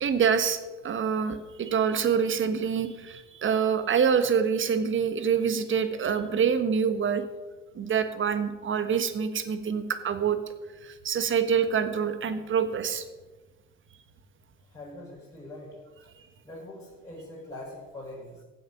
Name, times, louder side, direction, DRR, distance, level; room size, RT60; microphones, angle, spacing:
voice 1, 0.0-7.2 7.7-10.4 10.8-13.0, right 7 dB, 25° right, 11 dB, 1.4 m, -26 dB
voice 2, 14.7-15.8 16.4-18.4, left 1 dB, 5° left, -7 dB, 4.8 m, -43 dB
15.0 x 8.8 x 6.1 m, 1.2 s
figure-of-eight pair, 70°, 45 cm